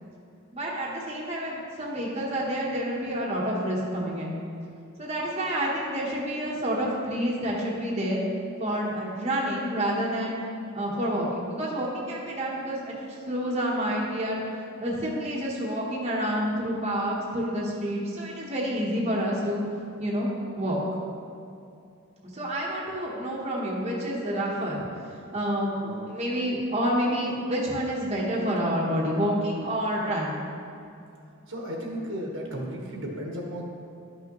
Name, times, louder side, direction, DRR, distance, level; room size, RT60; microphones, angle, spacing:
voice 1, 0.5-4.4 5.0-8.2 8.6-10.4 10.7-12.9 13.3-14.4 14.8-19.6 20.0-20.3 20.6-20.8 22.3-24.8 25.3-30.4, equal, 30° right, -5 dB, 1.0 m, -28 dB
voice 2, 31.5-33.6, equal, 60° right, -1 dB, 1.2 m, -34 dB
11.5 x 6.0 x 3.0 m, 2.6 s
head